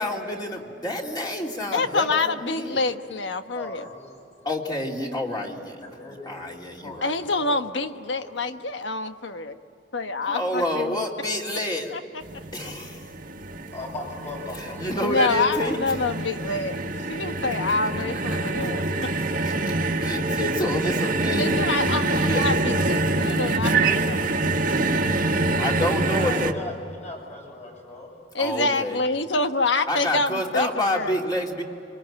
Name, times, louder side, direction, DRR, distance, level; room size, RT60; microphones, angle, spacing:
voice 1, 0.0-2.8 4.4-7.1 10.3-11.9 12.5-13.1 14.5-15.9 18.0-18.5 19.4-22.5 24.8-25.3 25.6-26.6 28.4-29.0 29.9-31.6, left 1 dB, 25° left, 0 dB, 3.1 m, -29 dB
voice 2, 1.7-3.9 7.0-9.6 9.9-11.0 11.9-12.0 12.6-12.7 15.0-16.8 17.1-19.1 20.1-20.2 21.4-24.5 28.3-31.1, left 3 dB, 70° left, 8 dB, 1.2 m, -27 dB
voice 3, 3.5-4.1 5.8-6.4 6.8-7.0 7.3-8.5 13.7-15.5 25.9-28.1, left 2 dB, 40° left, 0 dB, 7.9 m, -39 dB
sound 1, 12.2-26.5, right 2 dB, 50° right, 1.5 m, -25 dB
26.5 x 24.5 x 9.0 m, 2.8 s
head